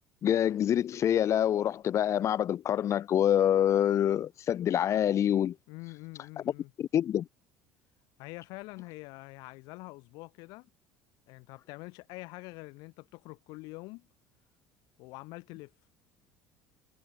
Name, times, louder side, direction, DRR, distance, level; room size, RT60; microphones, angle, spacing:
voice 1, 0.2-5.5 6.8-7.3, left 10 dB, 45° left, 0.5 m, -26 dB
voice 2, 5.7-6.7 8.2-10.7 11.3-14.1 15.0-15.7, left 24 dB, 70° left, 1.4 m, -45 dB
hypercardioid pair, 70°, 7 cm